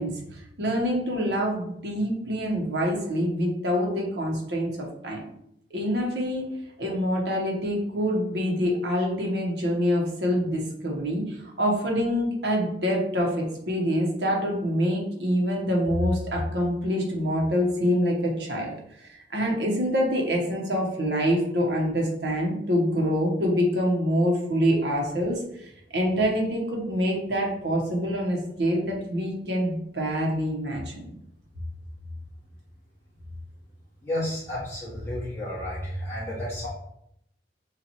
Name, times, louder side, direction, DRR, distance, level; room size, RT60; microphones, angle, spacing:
voice 1, 0.0-5.2 5.7-6.5 6.8-31.1, equal, 65° right, -1 dB, 1.1 m, -26 dB
voice 2, 34.0-36.7, left 1 dB, 15° left, -8 dB, 1.7 m, -31 dB
7.0 x 2.5 x 2.9 m, 0.76 s
head